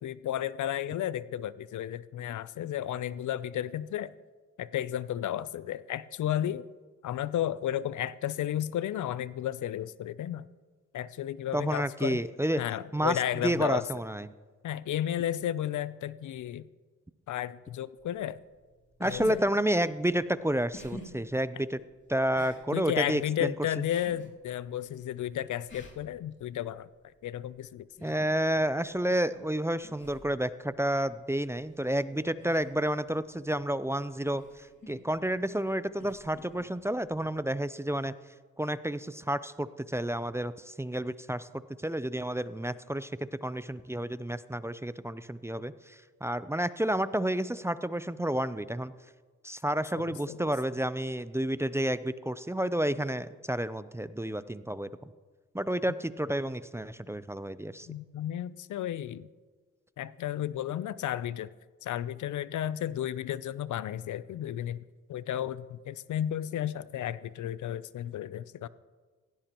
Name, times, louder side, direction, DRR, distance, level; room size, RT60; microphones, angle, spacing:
voice 1, 0.0-4.1 4.6-6.7 7.0-10.5 10.9-12.2 12.6-13.8 14.6-16.7 17.3-18.4 19.0-19.4 22.7-26.9 27.2-27.9 49.9-50.5 57.9-59.3 60.0-61.5 61.8-64.8 65.1-68.7, left 11 dB, 65° left, 18 dB, 0.6 m, -33 dB
voice 2, 11.5-12.6 12.9-14.3 19.0-21.8 22.1-23.5 28.0-34.4 34.9-38.1 38.6-48.9 49.4-54.9 55.5-57.9, right 1 dB, 10° right, 14 dB, 0.5 m, -30 dB
sound 1, 18.0-37.7, left 2 dB, 35° left, 2.8 m, -52 dB
16.5 x 16.0 x 3.0 m, 1.4 s
supercardioid pair, 60°, 33 cm